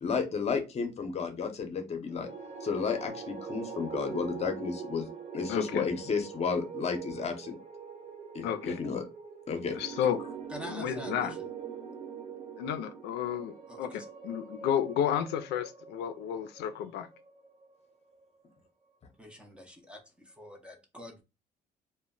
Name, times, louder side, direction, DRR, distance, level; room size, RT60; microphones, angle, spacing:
voice 1, 0.0-2.3 2.6-5.1 5.3-7.6 8.3-9.0 9.5-10.0, left 5 dB, 40° left, 0.7 m, -32 dB
sound 1, 2.1-18.4, right 6 dB, 45° right, 1.1 m, -43 dB
voice 2, 5.5-5.9 8.4-8.8 9.7-10.2 10.7-11.3 12.6-17.1, left 9 dB, 80° left, 0.4 m, -32 dB
voice 3, 10.5-11.4 13.7-14.1 19.2-21.2, left 1 dB, 5° right, 0.6 m, -46 dB
2.1 x 2.1 x 3.7 m
cardioid pair, 110°, 17 cm